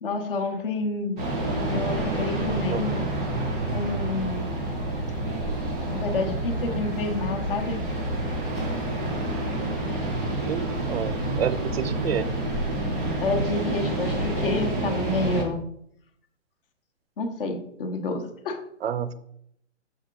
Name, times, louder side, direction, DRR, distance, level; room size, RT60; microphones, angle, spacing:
voice 1, 0.0-1.2 1.7-3.1 3.7-4.6 5.1-5.2 5.9-7.8 13.2-15.6 17.2-18.6, left 2 dB, 45° left, 6 dB, 1.1 m, -29 dB
sound 1, 1.2-15.4, right 1 dB, 5° right, 0.3 m, -28 dB
voice 2, 10.5-12.3 18.8-19.1, right 8 dB, 55° right, 14 dB, 0.5 m, -29 dB
6.7 x 5.1 x 3.8 m, 0.72 s
hypercardioid pair, 150°, 37 cm